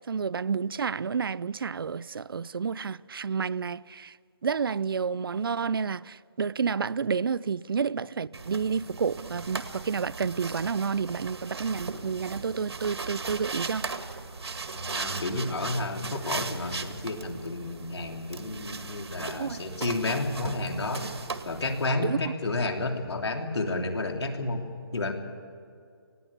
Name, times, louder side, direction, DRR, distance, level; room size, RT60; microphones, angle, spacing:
voice 1, 0.1-4.1 4.4-13.9 19.3-19.6 22.0-22.2, right 6 dB, 60° right, 0.4 m, -30 dB
sound 1, 8.3-21.9, right 4 dB, 85° right, 1.9 m, -38 dB
voice 2, 14.7-21.1 21.4-24.7 24.9-25.1, left 2 dB, 85° left, 3.2 m, -31 dB
20.0 x 16.0 x 8.6 m
hypercardioid pair, 175°, 13 cm